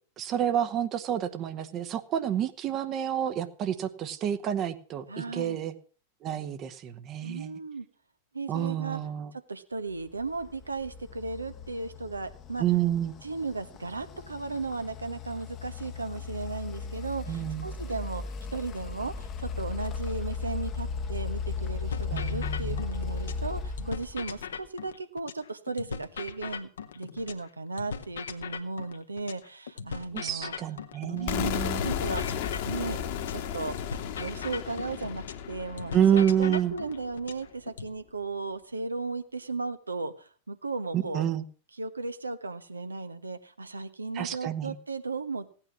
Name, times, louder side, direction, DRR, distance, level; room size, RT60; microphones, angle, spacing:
voice 1, 0.2-5.7 6.2-7.5 8.5-9.3 12.6-13.1 17.3-17.7 22.1-22.8 30.1-31.8 35.9-36.7 40.9-41.4 44.1-44.7, right 10 dB, 35° right, 9 dB, 1.1 m, -28 dB
voice 2, 5.1-5.6 7.2-7.9 8.3-9.0 9.3-12.6 13.2-18.2 18.5-26.7 26.9-30.5 31.1-31.5 31.8-32.4 32.6-33.0 33.3-33.8 34.2-41.3 41.8-45.5, right 3 dB, 80° right, 10 dB, 1.1 m, -36 dB
sound 1, 10.2-24.7, left 5 dB, 30° left, 1.0 m, -36 dB
sound 2, 21.9-23.5 23.8-27.5 27.8-31.5 31.8-35.5 35.8-37.9, left 6 dB, 65° left, 1.1 m, -39 dB
sound 3, 31.3-37.1, left 9 dB, 50° left, 1.5 m, -34 dB
16.0 x 9.0 x 6.2 m, 0.40 s
figure-of-eight pair, 90°, 0 cm